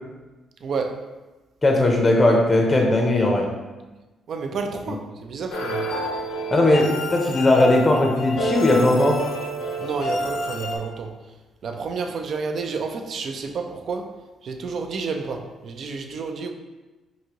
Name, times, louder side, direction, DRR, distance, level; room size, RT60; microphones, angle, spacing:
voice 1, 0.6-1.1 4.3-5.9 9.8-11.2 11.6-16.5, right 4 dB, 60° right, 0.4 m, -30 dB
voice 2, 1.6-3.5 4.9-5.0 6.5-9.2, left 2 dB, 25° left, 0.6 m, -18 dB
sound 1, 5.5-10.8, equal, 80° left, 0.7 m, -28 dB
4.8 x 2.7 x 2.9 m
cardioid pair, 90°, 0 cm